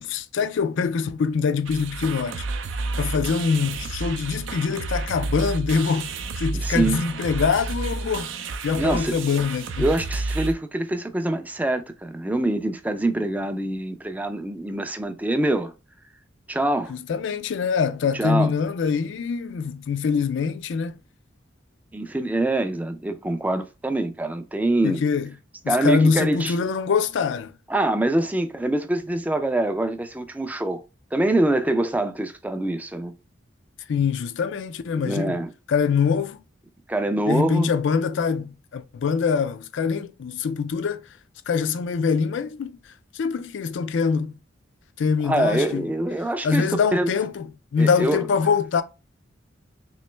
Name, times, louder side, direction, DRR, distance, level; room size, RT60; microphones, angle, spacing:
voice 1, 0.0-2.4 3.0-8.3 8.6-9.9 16.9-21.0 24.8-25.3 25.6-27.5 33.9-35.4 35.7-36.4 37.3-41.0 41.5-42.8 43.1-44.3 45.0-45.9 46.4-48.8, left 5 dB, 70° left, 0.4 m, -24 dB
sound 1, 1.7-10.5, right 3 dB, 70° right, 0.4 m, -30 dB
voice 2, 6.5-7.0 8.8-9.1 9.8-15.7 16.5-16.9 18.1-18.5 21.9-25.0 25.7-26.5 27.7-30.8 31.1-33.1 35.0-35.5 36.9-37.7 45.2-47.1 47.8-48.2, right 1 dB, 10° right, 0.3 m, -24 dB
3.1 x 3.0 x 3.2 m
head